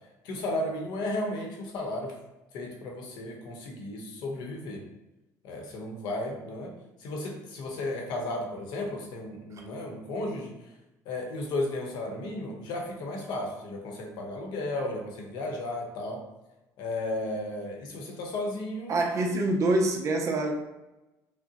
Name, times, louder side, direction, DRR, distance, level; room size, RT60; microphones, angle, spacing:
voice 1, 0.2-2.1 2.5-4.8 5.4-6.7 7.0-10.5 11.0-16.2 16.8-19.0, left 1 dB, 75° left, 1 dB, 1.0 m, -34 dB
voice 2, 18.9-20.5, right 2 dB, 45° right, 2 dB, 0.7 m, -26 dB
6.3 x 2.2 x 2.9 m, 1.0 s
cardioid pair, 125°, 7 cm